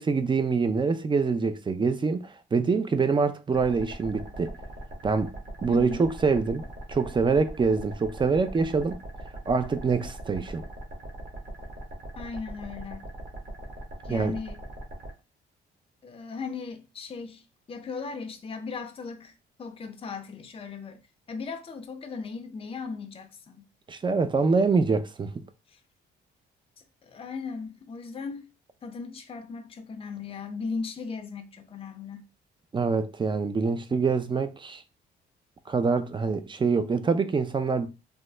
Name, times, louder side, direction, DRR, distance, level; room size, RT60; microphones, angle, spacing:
voice 1, 0.0-2.2 2.5-4.5 5.0-5.3 5.6-6.6 6.9-9.0 9.5-10.6 14.1-14.4 23.9-25.3 32.7-34.8 35.7-37.9, right 4 dB, 25° right, 0.4 m, -25 dB
sound 1, 3.5-15.1, right 1 dB, 40° right, 1.3 m, -41 dB
voice 2, 5.7-6.1 12.2-13.1 14.0-14.6 16.0-19.3 19.6-21.0 21.3-23.7 25.7-25.8 27.0-28.5 28.8-32.3, left 4 dB, 30° left, 0.5 m, -37 dB
3.4 x 2.0 x 3.2 m
cardioid pair, 90°, 20 cm